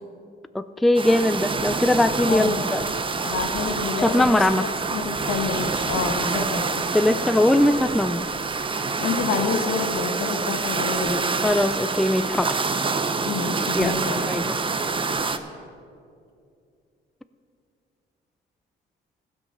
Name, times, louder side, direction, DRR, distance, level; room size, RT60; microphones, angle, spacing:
voice 1, 0.5-2.8 4.0-4.7 6.4-6.5 6.9-8.3 11.4-12.7 13.7-14.0 14.2-14.5, left 1 dB, ahead, 12 dB, 0.3 m, -21 dB
sound 1, 0.9-15.4, right 4 dB, 25° right, 0.7 m, -27 dB
voice 2, 2.3-2.7 3.2-7.2 9.0-11.3 13.2-14.2, left 5 dB, 80° left, 4 dB, 1.5 m, -28 dB
15.5 x 5.3 x 6.7 m, 2.4 s
cardioid pair, 90°, 20 cm